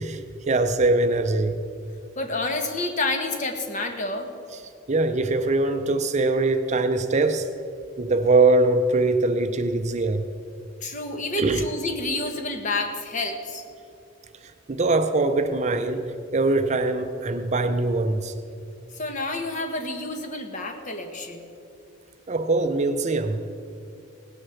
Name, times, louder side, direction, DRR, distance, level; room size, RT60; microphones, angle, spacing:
voice 1, 0.0-1.6 4.5-4.6 4.9-7.5 8.0-10.3 11.4-11.6 14.4-18.3 22.3-23.4, right 2 dB, 35° right, 8 dB, 0.6 m, -22 dB
voice 2, 2.2-4.3 10.8-13.6 18.9-21.5, left 2 dB, 40° left, 5 dB, 1.2 m, -29 dB
17.5 x 6.7 x 7.0 m, 2.5 s
head